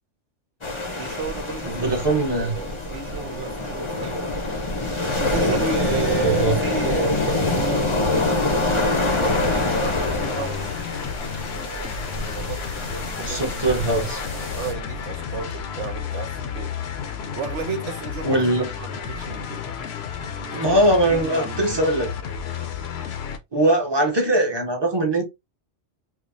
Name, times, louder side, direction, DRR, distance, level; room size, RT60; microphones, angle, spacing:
sound 1, 0.6-14.7, left 2 dB, 30° left, 0.6 m, -25 dB
voice 1, 1.0-1.9 2.2-4.3 5.2-7.8 9.1-10.7 12.2-14.1 14.6-16.7 17.3-18.5 18.8-19.6 20.4-20.8 21.1-21.8, right 6 dB, 70° right, 1.0 m, -32 dB
voice 2, 1.7-2.5 6.2-6.5 13.3-14.2 18.2-18.7 20.5-22.1 23.5-25.2, right 1 dB, 25° right, 0.8 m, -21 dB
sound 2, 9.0-23.4, left 7 dB, 60° left, 0.8 m, -32 dB
4.6 x 2.1 x 2.6 m
omnidirectional pair, 1.3 m